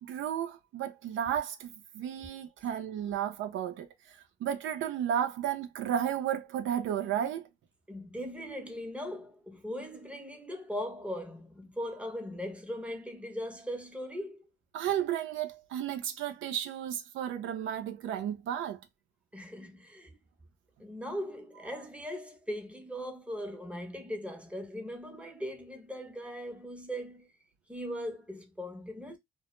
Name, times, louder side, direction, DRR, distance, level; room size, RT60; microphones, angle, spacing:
voice 1, 0.0-3.9 4.4-7.4 14.7-18.8, right 9 dB, 80° right, 0.5 m, -33 dB
voice 2, 7.9-14.5 19.3-20.2 20.8-27.3 27.7-29.2, equal, 5° right, 0.7 m, -39 dB
2.1 x 2.0 x 2.9 m
cardioid pair, 90°, 20 cm